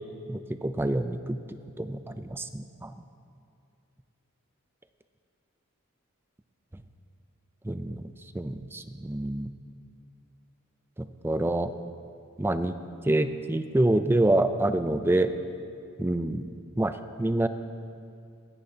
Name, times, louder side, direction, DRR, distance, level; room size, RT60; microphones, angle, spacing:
voice 1, 0.3-2.9 7.6-8.1 8.3-9.5 11.0-11.7 12.4-12.7 13.0-15.3 16.0-16.4 16.8-17.5, right 1 dB, 10° right, 10 dB, 0.4 m, -27 dB
24.5 x 9.9 x 2.8 m, 2.4 s
head